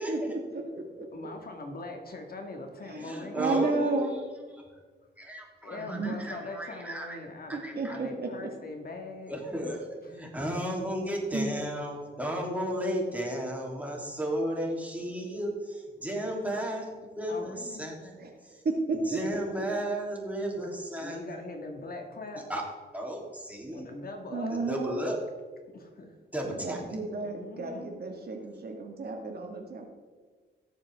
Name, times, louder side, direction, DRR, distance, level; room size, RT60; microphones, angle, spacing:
voice 1, 0.1-1.1 2.9-3.1 3.4-4.1 5.8-6.3 7.5-8.5 11.3-11.5 18.2-18.3 18.6-19.4 24.3-25.0 26.5-29.9, right 3 dB, 55° right, 2 dB, 2.0 m, -32 dB
voice 2, 1.1-4.1 5.6-7.6 7.9-9.3 10.0-10.2 17.3-17.9 21.0-22.5 23.7-24.6 25.7-26.2 27.2-28.0, left 2 dB, 50° left, 3 dB, 1.9 m, -41 dB
voice 3, 3.0-4.2 4.5-4.8 5.2-7.2 7.5-8.0 9.3-18.1 18.4-18.6 18.9-21.2 22.5-22.6 22.9-23.8 24.5-25.2 26.3-26.8, equal, 10° right, -2 dB, 3.3 m, -34 dB
17.5 x 7.3 x 3.7 m, 1.5 s
cardioid pair, 90°, 19 cm